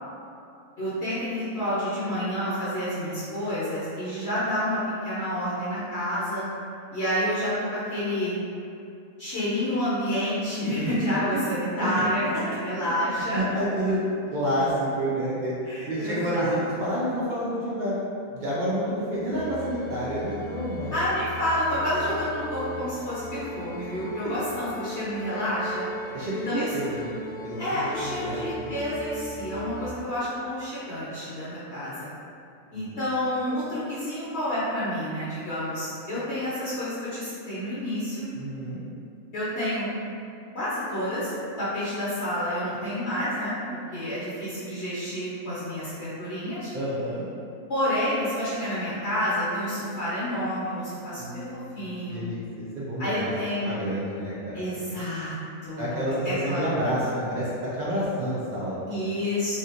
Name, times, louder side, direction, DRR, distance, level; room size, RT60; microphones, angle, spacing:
voice 1, 0.8-6.4 6.9-8.4 9.2-13.4 15.6-16.6 20.9-25.9 26.5-26.7 27.6-32.1 32.7-38.3 39.3-39.9 40.5-41.3 41.6-46.7 47.7-52.2 53.0-53.7 54.5-55.3 55.6-56.7 58.9-59.5, equal, 55° left, -12 dB, 1.0 m, -29 dB
voice 2, 13.2-14.0 14.3-17.9 18.3-21.0 26.1-27.1 27.4-28.7 32.7-33.0 38.3-38.8 46.7-47.3 51.2-53.3 53.6-54.6 54.9-55.0 55.8-58.7, equal, 65° right, -9 dB, 0.4 m, -29 dB
sound 1, 19.3-29.9, left 1 dB, 75° left, 1.0 m, -38 dB
3.3 x 2.5 x 2.8 m, 2.6 s
omnidirectional pair, 1.5 m